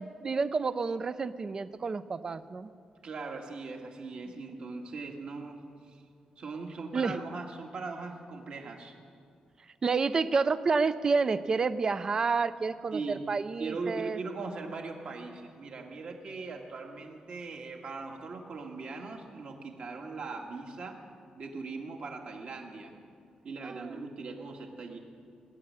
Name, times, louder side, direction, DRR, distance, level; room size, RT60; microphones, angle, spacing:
voice 1, 0.0-2.7 6.9-7.1 9.8-14.2 23.6-24.0, right 4 dB, 30° right, 13 dB, 0.4 m, -29 dB
voice 2, 3.0-6.0 6.4-8.9 12.9-13.3 13.6-21.0 21.3-22.9 23.4-25.0, right 4 dB, 55° right, 2 dB, 1.8 m, -40 dB
18.0 x 7.5 x 9.7 m, 2.3 s
wide cardioid pair, 165°, 2 cm